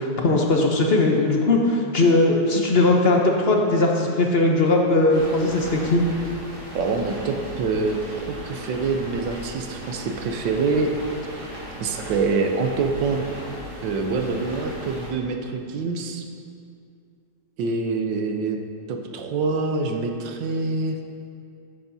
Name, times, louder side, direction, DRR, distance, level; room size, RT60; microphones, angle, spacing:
voice 1, 0.0-6.0, left 2 dB, 50° left, 0 dB, 0.8 m, -19 dB
sound 1, 5.1-15.1, equal, 60° right, 3.2 m, -37 dB
voice 2, 6.7-10.9 11.8-13.2 13.8-16.3 17.6-18.6 18.9-21.0, right 4 dB, 85° right, 4 dB, 1.5 m, -25 dB
14.0 x 8.4 x 2.7 m, 2.4 s
omnidirectional pair, 1.9 m